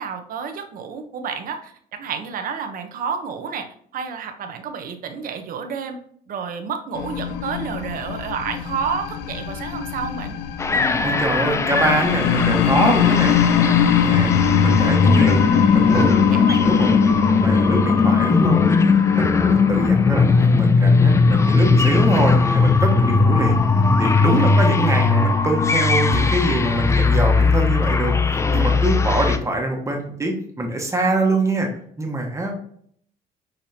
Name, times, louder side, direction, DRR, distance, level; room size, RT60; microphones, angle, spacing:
voice 1, 0.0-6.0 6.3-10.4 15.9-16.6 24.3-24.5, right 6 dB, 55° right, 6 dB, 0.8 m, -30 dB
sound 1, 6.9-19.9, left 8 dB, 85° left, 0.4 m, -22 dB
sound 2, 10.6-29.4, left 4 dB, 15° left, 0.3 m, -18 dB
voice 2, 11.0-13.4 14.0-14.3 14.6-15.4 15.7-18.6 19.1-23.6 24.0-28.1 28.5-31.7 32.0-32.6, right 2 dB, 15° right, 1 dB, 1.2 m, -24 dB
6.6 x 2.8 x 2.7 m, 0.62 s
cardioid pair, 110°, 17 cm